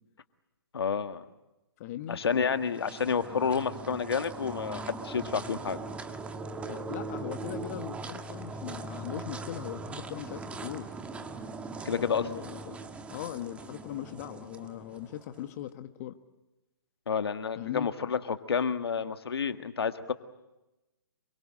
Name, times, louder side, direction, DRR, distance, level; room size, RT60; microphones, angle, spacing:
voice 1, 0.7-1.2 2.1-5.8 11.9-12.3 17.1-20.1, left 6 dB, 75° left, 9 dB, 1.8 m, -30 dB
voice 2, 1.8-2.2 6.7-10.9 11.9-12.8 13.1-16.2 17.6-17.9, left 12 dB, 40° left, 9 dB, 1.4 m, -39 dB
sound 1, 2.1-15.5, right 3 dB, 10° right, 1.6 m, -40 dB
27.5 x 24.0 x 7.6 m, 0.98 s
hypercardioid pair, 140°, 13 cm